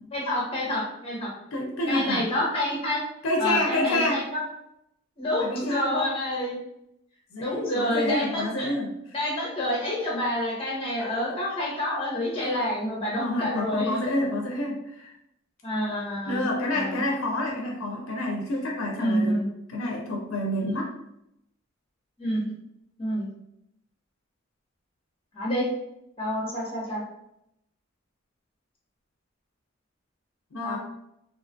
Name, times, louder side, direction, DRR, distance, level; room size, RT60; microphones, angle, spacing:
voice 1, 0.1-1.3 1.9-3.0 3.4-4.4 5.2-6.6 7.4-8.7 9.1-14.0 15.6-16.4 16.7-17.0 18.9-19.5 22.2-22.5 23.0-23.3 25.3-25.7 26.2-27.0 30.6-30.8, left 1 dB, 30° left, -4 dB, 0.8 m, -28 dB
voice 2, 1.5-2.3 3.2-4.2 5.4-5.9 7.3-8.9 11.0-11.4 12.4-12.5 13.2-15.1 16.3-19.4 19.7-20.9 30.5-30.8, left 1 dB, 75° left, 0 dB, 0.5 m, -28 dB
2.5 x 2.3 x 2.5 m, 0.80 s
head